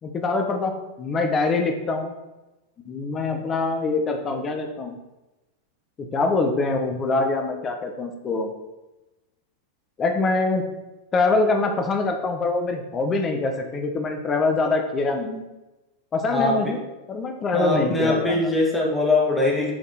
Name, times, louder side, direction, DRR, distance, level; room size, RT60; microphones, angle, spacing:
voice 1, 0.0-2.1 2.9-5.0 6.0-8.5 10.0-10.6 11.1-15.5 16.1-16.8 17.1-18.5, left 3 dB, 25° left, 4 dB, 1.1 m, -24 dB
voice 2, 16.3-16.7 17.5-19.7, left 2 dB, 10° left, -2 dB, 1.8 m, -22 dB
8.9 x 4.2 x 4.2 m, 1.0 s
figure-of-eight pair, 90°, 0 cm